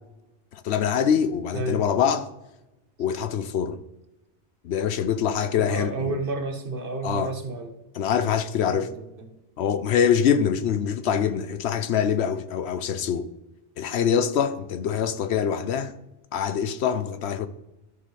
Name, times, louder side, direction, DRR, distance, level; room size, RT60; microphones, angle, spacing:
voice 1, 0.5-2.3 3.0-3.8 4.6-6.1 7.0-7.3 7.9-8.9 9.6-13.3 13.8-15.9 16.3-17.5, left 8 dB, 70° left, 0.8 m, -24 dB
voice 2, 1.5-1.8 5.6-7.7 8.5-9.3, right 2 dB, 50° right, 1.3 m, -31 dB
13.5 x 6.7 x 3.2 m
omnidirectional pair, 1.2 m